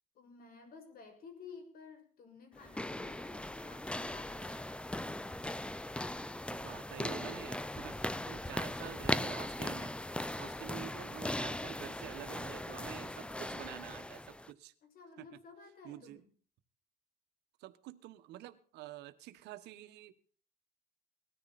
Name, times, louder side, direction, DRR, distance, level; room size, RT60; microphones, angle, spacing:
voice 1, 0.1-4.8 14.8-16.3, left 5 dB, 60° left, 5 dB, 6.7 m, -54 dB
sound 1, 2.6-14.5, left 1 dB, 5° left, 0.7 m, -39 dB
voice 2, 6.5-9.9 10.4-14.7 15.2-15.3 15.8-16.2 17.6-20.1, right 14 dB, 85° right, 11 dB, 1.5 m, -48 dB
19.5 x 14.0 x 4.3 m, 0.42 s
cardioid pair, 110°, 17 cm